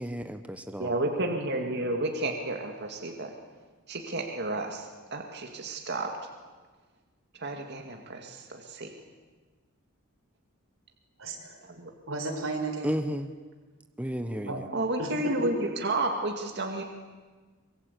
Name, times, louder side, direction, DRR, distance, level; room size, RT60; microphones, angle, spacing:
voice 1, 0.0-1.0 12.8-13.3 14.0-14.7, equal, 5° right, 8 dB, 0.9 m, -33 dB
voice 2, 0.8-3.3 3.9-4.9 5.1-6.1 7.4-8.4 8.7-8.9 11.8-11.9 14.7-16.8, right 2 dB, 55° right, 3 dB, 2.2 m, -31 dB
voice 3, 11.2-11.6 12.1-13.0 14.4-14.6 15.0-15.5, right 2 dB, 85° right, 4 dB, 4.7 m, -34 dB
24.5 x 22.5 x 8.3 m, 1.4 s
head